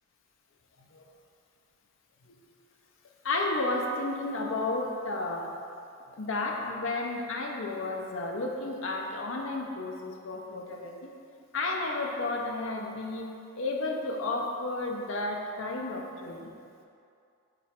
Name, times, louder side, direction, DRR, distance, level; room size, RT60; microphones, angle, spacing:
voice 1, 3.2-5.5 6.1-11.1 11.5-13.3 13.6-16.5, left 2 dB, 80° left, 0 dB, 0.7 m, -32 dB
5.3 x 4.1 x 4.4 m, 2.4 s
head